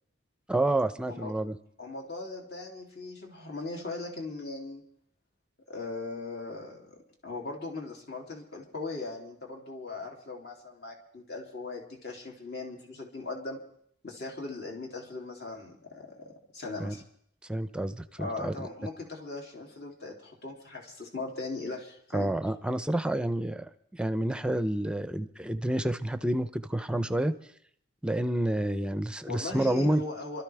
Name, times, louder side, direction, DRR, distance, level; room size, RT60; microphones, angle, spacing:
voice 1, 0.5-1.5 16.8-16.9 17.5-18.5 22.1-27.3 28.0-30.0, right 1 dB, 5° right, 11 dB, 0.6 m, -29 dB
voice 2, 1.8-4.8 5.7-7.0 7.2-13.6 14.0-17.0 18.2-22.3 29.2-30.4, left 3 dB, 55° left, 0 dB, 2.9 m, -39 dB
27.5 x 13.0 x 3.4 m, 0.67 s
head